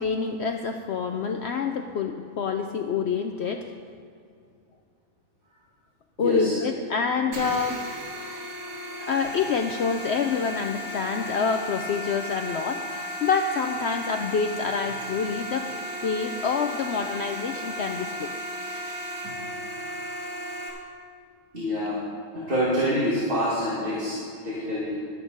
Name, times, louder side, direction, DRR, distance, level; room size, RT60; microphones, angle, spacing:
voice 1, 0.0-3.7 6.2-7.8 9.0-15.7 16.0-18.3 18.7-19.0 22.4-22.5, left 5 dB, 70° left, 5 dB, 0.6 m, -27 dB
voice 2, 6.2-6.6 21.5-22.0 22.3-25.0, equal, 35° right, -7 dB, 2.1 m, -26 dB
sound 1, 7.3-20.7, equal, 85° right, 2.3 m, -35 dB
11.5 x 8.5 x 5.2 m, 2.4 s
omnidirectional pair, 1.6 m